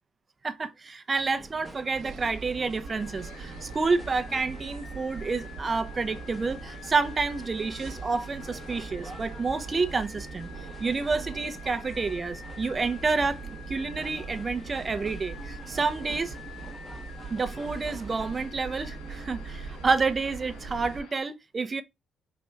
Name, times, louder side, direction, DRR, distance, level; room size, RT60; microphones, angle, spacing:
voice 1, 0.4-10.5 10.8-16.3 17.3-21.8, right 4 dB, 30° right, 0.5 m, -29 dB
sound 1, 1.1-18.5, right 1 dB, 15° right, 0.8 m, -48 dB
sound 2, 1.9-21.0, right 4 dB, 80° right, 0.9 m, -41 dB
sound 3, 2.9-21.2, left 9 dB, 85° left, 0.6 m, -49 dB
4.2 x 2.9 x 2.3 m
cardioid pair, 90°, 0 cm